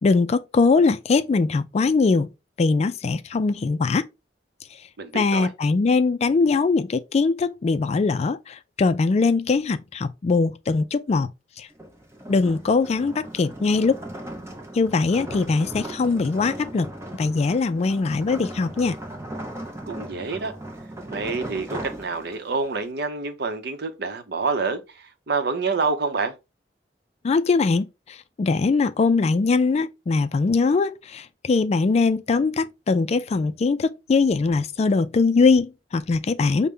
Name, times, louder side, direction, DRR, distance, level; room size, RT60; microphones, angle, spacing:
voice 1, 0.0-2.3 2.6-4.0 5.1-11.3 11.6-11.7 12.3-14.0 14.7-19.0 27.2-36.7, left 4 dB, 40° left, 0.3 m, -21 dB
voice 2, 5.0-5.5 19.9-20.5 21.1-26.3, right 4 dB, 65° right, 0.7 m, -27 dB
sound 1, 11.7-22.7, right 1 dB, 15° right, 0.8 m, -37 dB
5.2 x 2.1 x 3.3 m
head